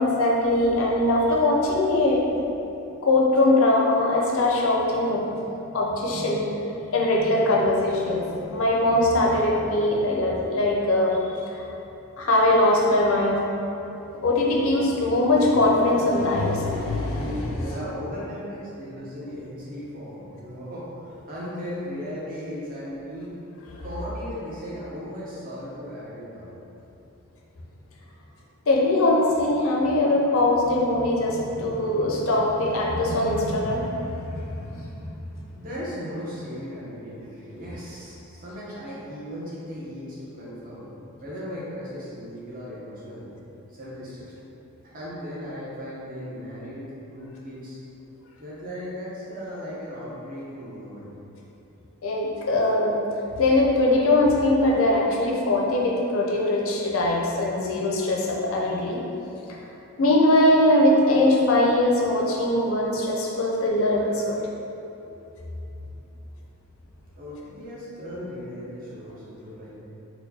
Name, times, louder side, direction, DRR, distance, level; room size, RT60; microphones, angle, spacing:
voice 1, 0.0-2.2 3.0-5.3 5.7-6.4 6.9-11.2 11.5-11.6 12.2-13.4 14.2-17.7 23.7-23.8 28.7-35.1 52.0-53.0 53.4-59.0 59.5-59.6 60.0-64.5, left 1 dB, 65° left, -2 dB, 0.5 m, -21 dB
voice 2, 17.5-23.4 23.8-26.5 35.6-40.9 41.2-43.3 43.7-44.4 44.9-47.8 48.4-51.1 67.2-69.8, equal, 40° right, -7 dB, 0.8 m, -37 dB
4.3 x 2.2 x 2.7 m, 3.0 s
head